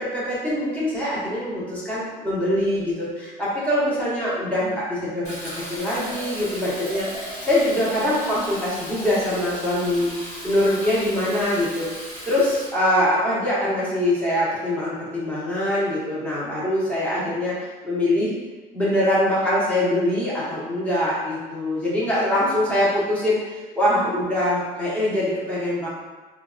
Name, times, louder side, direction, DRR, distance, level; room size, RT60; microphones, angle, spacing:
voice 1, 0.0-5.2 5.5-11.9 12.3-18.3 18.7-25.9, left 1 dB, 10° left, -9 dB, 1.0 m, -23 dB
Fill (with liquid), 5.2-12.7, equal, 40° left, 1.4 m, -36 dB
3.2 x 2.3 x 2.4 m, 1.3 s
cardioid pair, 110°, 17 cm